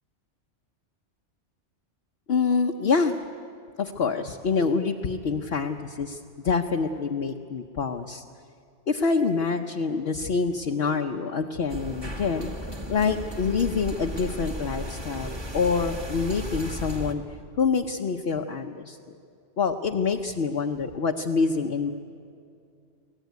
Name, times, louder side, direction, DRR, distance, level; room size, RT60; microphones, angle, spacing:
voice 1, 2.3-3.1 3.8-8.2 8.9-12.5 12.9-17.2 17.6-19.0 19.6-21.9, left 5 dB, 60° left, 2 dB, 1.0 m, -26 dB
sound 1, 11.7-17.1, equal, 20° right, 1.5 m, -35 dB
24.0 x 17.5 x 9.4 m, 2.4 s
omnidirectional pair, 1.2 m